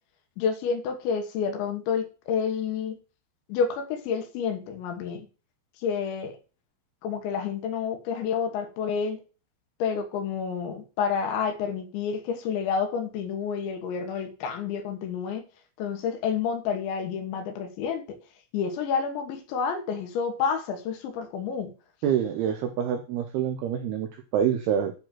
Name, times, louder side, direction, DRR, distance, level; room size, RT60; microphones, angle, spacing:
voice 1, 0.4-3.0 3.5-5.3 5.8-6.4 7.0-9.2 9.8-15.5 15.8-18.2 18.5-21.7, left 6 dB, 75° left, 6 dB, 3.5 m, -29 dB
voice 2, 22.0-24.9, right 9 dB, 80° right, 6 dB, 2.3 m, -26 dB
10.5 x 4.3 x 7.4 m, 0.34 s
omnidirectional pair, 5.6 m